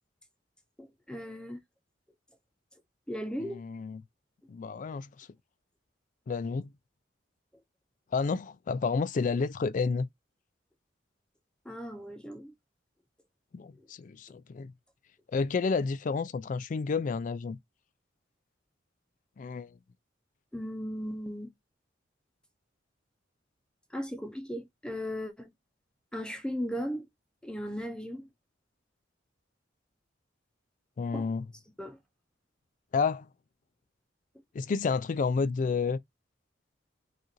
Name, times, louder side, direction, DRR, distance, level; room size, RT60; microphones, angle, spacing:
voice 1, 0.8-1.6 3.1-3.6 11.7-12.5 13.8-13.9 20.5-21.5 23.9-25.5 26.1-27.1 27.4-28.3 31.1-31.3 31.8-32.0, equal, 5° left, 0.6 m, -37 dB
voice 2, 3.4-4.0 4.5-5.3 6.3-6.7 8.1-10.1 13.5-14.7 15.3-17.6 19.4-19.7 31.0-31.5 32.9-33.3 34.5-36.0, left 4 dB, 40° left, 0.3 m, -30 dB
4.7 x 2.5 x 3.0 m
head